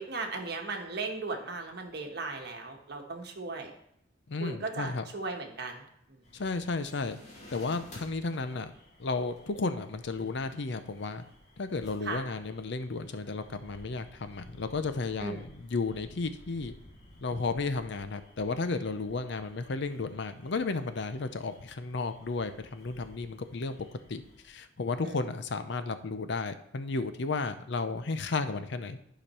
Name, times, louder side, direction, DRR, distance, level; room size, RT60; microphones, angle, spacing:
voice 1, 0.0-3.7 4.4-5.8 6.1-6.2 12.0-12.2 15.2-15.4 25.0-25.2, right 3 dB, 60° right, 3 dB, 1.3 m, -37 dB
voice 2, 4.3-5.0 6.3-7.2 7.5-8.7 9.0-11.2 11.6-16.7 17.2-23.8 24.1-29.0, left 3 dB, 65° left, 10 dB, 0.6 m, -33 dB
sound 1, 6.2-24.5, left 1 dB, 40° left, 2.1 m, -55 dB
11.0 x 5.1 x 4.4 m, 0.74 s
head